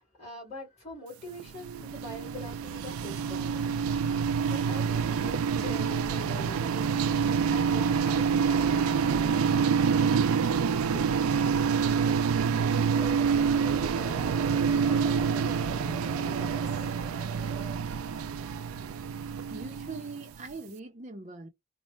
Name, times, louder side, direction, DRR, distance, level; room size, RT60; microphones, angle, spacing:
voice 1, 0.0-3.8 4.4-9.4 10.4-12.4 12.9-16.9, equal, 30° left, 2.4 m, -44 dB
sound 1, 1.4-20.4, right 6 dB, 85° right, 0.3 m, -27 dB
sound 2, 12.9-17.8, right 4 dB, 10° left, 1.6 m, -45 dB
voice 2, 19.5-21.5, right 3 dB, 35° right, 0.6 m, -41 dB
4.1 x 2.1 x 3.2 m
head